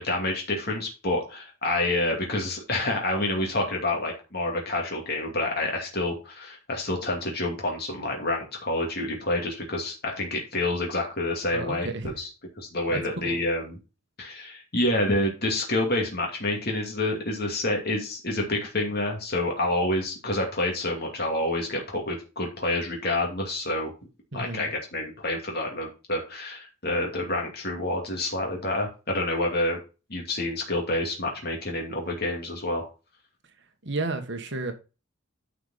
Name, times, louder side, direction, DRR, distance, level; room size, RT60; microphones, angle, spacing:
voice 1, 0.0-11.9 12.2-12.3 12.6-13.8 14.2-23.9 24.3-29.8 30.1-32.9, left 1 dB, 50° left, 2.6 m, -28 dB
voice 2, 11.5-12.1 12.9-13.4 24.3-24.7 33.8-34.7, right 2 dB, 55° right, 1.7 m, -32 dB
10.0 x 5.4 x 4.2 m
head